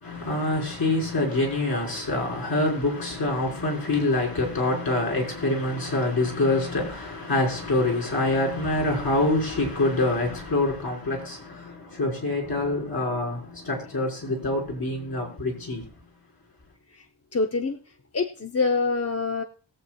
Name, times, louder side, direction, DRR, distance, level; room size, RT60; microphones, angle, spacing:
voice 1, 0.0-15.8, left 2 dB, 50° left, 4.6 m, -25 dB
voice 2, 17.3-17.8 18.1-19.4, left 4 dB, 35° left, 0.8 m, -25 dB
21.0 x 7.5 x 2.4 m
cardioid pair, 80°, 45 cm